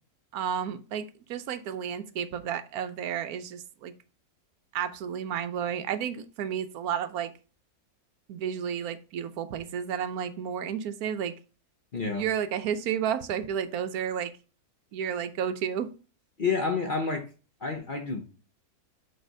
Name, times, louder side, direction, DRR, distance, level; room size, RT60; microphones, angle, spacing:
voice 1, 0.3-3.9 4.7-7.3 8.3-11.3 12.1-14.3 14.9-15.9, right 8 dB, 75° right, 11 dB, 1.0 m, -32 dB
voice 2, 11.9-12.2 16.4-17.2 17.6-18.3, left 4 dB, 45° left, 3 dB, 0.7 m, -29 dB
6.5 x 3.3 x 4.6 m, 0.35 s
omnidirectional pair, 1.7 m